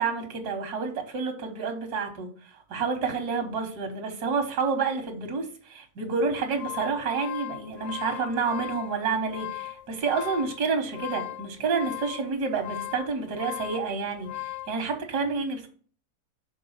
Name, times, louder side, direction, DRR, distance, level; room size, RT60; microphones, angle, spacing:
voice 1, 0.0-15.7, right 5 dB, 85° right, 1.7 m, -29 dB
sound 1, 6.3-14.8, left 17 dB, 70° left, 0.8 m, -38 dB
6.1 x 3.8 x 5.5 m
omnidirectional pair, 1.7 m